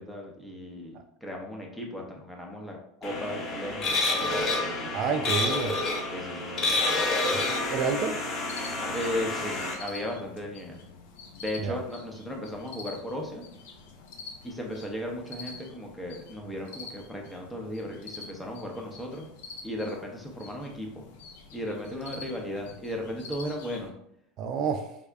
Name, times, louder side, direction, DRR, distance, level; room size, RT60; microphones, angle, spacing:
voice 1, 0.0-4.9 6.1-6.8 8.9-10.8 11.4-13.4 14.4-19.3 19.6-21.0 21.5-23.9, equal, 5° left, 0 dB, 0.7 m, -36 dB
sound 1, 3.0-9.7, left 2 dB, 45° left, 0.8 m, -29 dB
voice 2, 4.9-5.7 7.3-8.2 11.6-11.8 24.4-24.9, right 5 dB, 45° right, 5 dB, 0.3 m, -29 dB
sound 2, 8.5-23.9, left 4 dB, 80° left, 0.5 m, -47 dB
3.6 x 2.0 x 3.4 m, 0.73 s
supercardioid pair, 135°, 0 cm